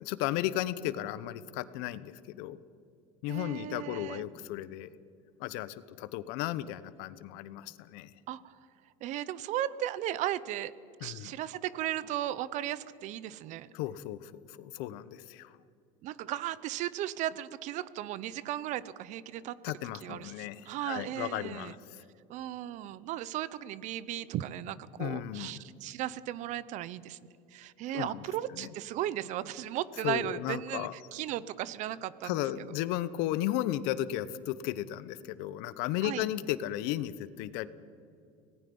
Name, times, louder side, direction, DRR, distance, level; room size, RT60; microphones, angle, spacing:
voice 1, 0.0-2.6 3.2-4.9 5.4-8.1 11.0-11.3 13.7-15.5 19.6-22.0 25.0-25.6 27.9-28.3 28.5-28.7 30.0-30.9 32.2-37.7, left 13 dB, 75° left, 16 dB, 0.9 m, -35 dB
voice 2, 3.3-4.2 8.3-8.6 9.0-10.7 11.0-13.7 16.0-19.6 20.0-21.7 22.3-27.2 27.5-32.4 36.0-36.3, right 13 dB, 50° right, 18 dB, 0.7 m, -36 dB
25.5 x 19.0 x 5.4 m, 2.5 s
cardioid pair, 150°, 16 cm